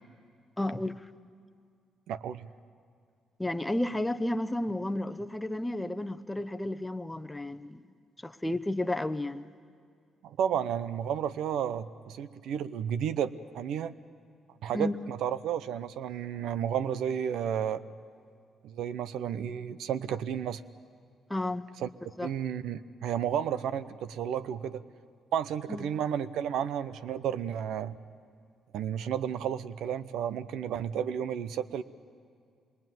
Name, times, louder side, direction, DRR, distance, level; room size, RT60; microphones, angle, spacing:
voice 1, 0.6-1.0 3.4-7.8 8.2-9.4 14.7-14.9 21.3-21.7 22.2-22.3 25.7-25.9, left 1 dB, 10° left, 0.8 m, -32 dB
voice 2, 2.1-2.5 10.2-13.9 14.6-17.8 18.6-20.6 21.8-21.9 22.2-24.8 25.3-28.0 28.7-31.8, right 9 dB, 80° right, 0.8 m, -32 dB
25.5 x 22.0 x 9.3 m
cardioid pair, 90°, 0 cm